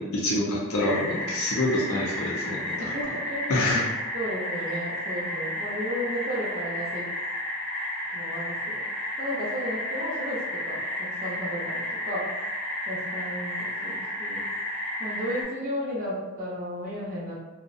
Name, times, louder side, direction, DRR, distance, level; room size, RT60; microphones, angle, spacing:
voice 1, 0.0-2.9 3.5-3.8, left 1 dB, 80° left, -4 dB, 0.6 m, -26 dB
sound 1, 0.8-15.4, left 1 dB, 5° left, 0.7 m, -32 dB
voice 2, 2.8-3.6 4.1-7.1 8.1-8.8 9.2-12.3 12.9-14.5 15.0-17.3, equal, 40° right, -9 dB, 0.5 m, -33 dB
2.6 x 2.1 x 2.4 m, 1.1 s
head